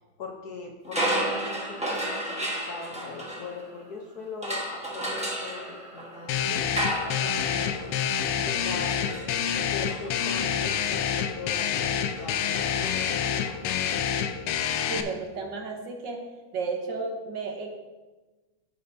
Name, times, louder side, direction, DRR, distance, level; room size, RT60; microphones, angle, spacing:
voice 1, 0.0-6.7 7.1-8.0 8.4-9.3 9.7-13.8, left 4 dB, 60° left, 1 dB, 1.1 m, -41 dB
sound 1, 0.8-3.9 4.4-13.4, right 1 dB, 5° right, 0.7 m, -34 dB
sound 2, 6.3-15.0, left 8 dB, 90° left, 1.5 m, -27 dB
voice 2, 14.9-16.2 16.5-17.8, right 4 dB, 65° right, 3 dB, 1.5 m, -33 dB
14.0 x 5.6 x 2.7 m, 1.2 s
omnidirectional pair, 2.3 m